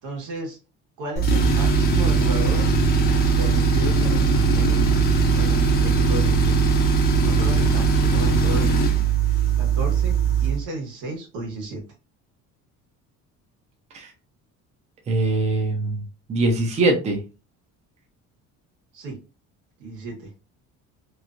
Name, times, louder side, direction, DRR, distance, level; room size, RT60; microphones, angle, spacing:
voice 1, 0.0-0.6 1.0-2.8 3.4-5.0 5.3-6.5 7.2-8.8 9.6-11.8 18.9-19.2 19.8-20.3, right 2 dB, 85° right, 0 dB, 1.4 m, -32 dB
Tools, 1.2-10.6, right 4 dB, 30° left, 0.5 m, -19 dB
voice 2, 15.1-16.0 16.3-17.2, right 2 dB, 20° right, 2 dB, 0.5 m, -22 dB
3.0 x 2.5 x 2.4 m, 0.31 s
cardioid pair, 170°, 31 cm